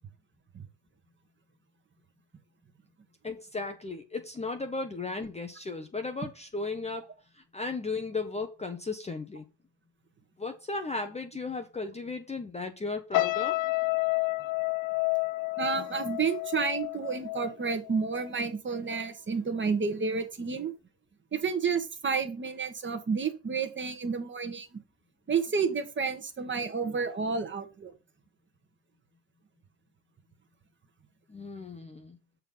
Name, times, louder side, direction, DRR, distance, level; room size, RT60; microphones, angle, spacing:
voice 1, 3.2-9.4 10.4-13.6 31.3-32.2, left 3 dB, 15° left, 0.9 m, -35 dB
sound 1, 13.1-18.4 18.7-19.1, left 23 dB, 45° left, 0.5 m, -30 dB
voice 2, 15.6-20.7 21.3-24.7 25.3-27.9, right 5 dB, 25° right, 1.5 m, -30 dB
6.7 x 4.6 x 5.5 m
hypercardioid pair, 85°, 49 cm